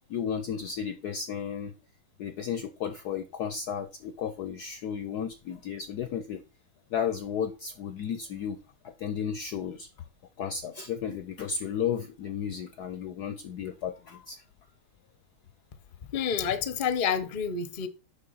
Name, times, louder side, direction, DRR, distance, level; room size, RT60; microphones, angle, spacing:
voice 1, 0.1-1.7 2.2-6.4 6.9-8.6 8.8-9.9 10.4-14.4, left 7 dB, 75° left, 0.9 m, -33 dB
voice 2, 16.1-17.9, left 7 dB, 60° left, 0.5 m, -28 dB
7.0 x 5.6 x 5.5 m
omnidirectional pair, 2.4 m